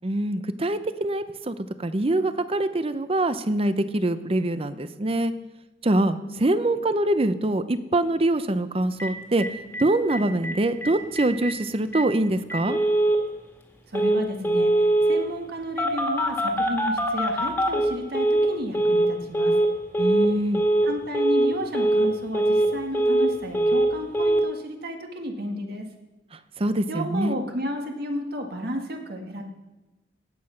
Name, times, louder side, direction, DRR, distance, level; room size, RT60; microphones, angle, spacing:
voice 1, 0.0-5.3 5.8-9.5 9.8-12.8 20.0-20.6 26.6-27.4, right 1 dB, 30° right, 12 dB, 0.7 m, -24 dB
Telephone, 9.0-9.1 9.4-9.5 9.7-9.8 10.1-10.5 10.8-10.9 11.2-11.5 11.9-12.0 12.5-13.2 13.9-14.2 14.4-15.2 15.8-18.5 18.7-19.1 19.3-19.7 19.9-20.3 20.5-20.9 21.1-21.5 21.7-22.1 22.3-23.3 23.5-23.9 24.1-24.4, right 1 dB, 10° left, 1.9 m, -22 dB
voice 2, 13.9-14.7 15.1-19.5 20.8-25.9 26.9-29.4, equal, 55° right, 3 dB, 1.9 m, -32 dB
16.5 x 8.6 x 5.8 m, 1.1 s
head